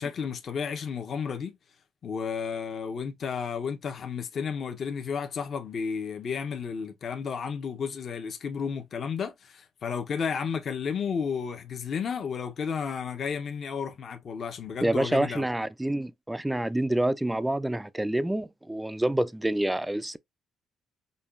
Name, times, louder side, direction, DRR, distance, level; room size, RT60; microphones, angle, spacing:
voice 1, 0.0-1.5 2.0-15.4, left 6 dB, 55° left, 0.7 m, -32 dB
voice 2, 14.8-20.2, right 1 dB, 10° right, 0.3 m, -27 dB
5.4 x 2.3 x 2.4 m
cardioid pair, 90°, 0 cm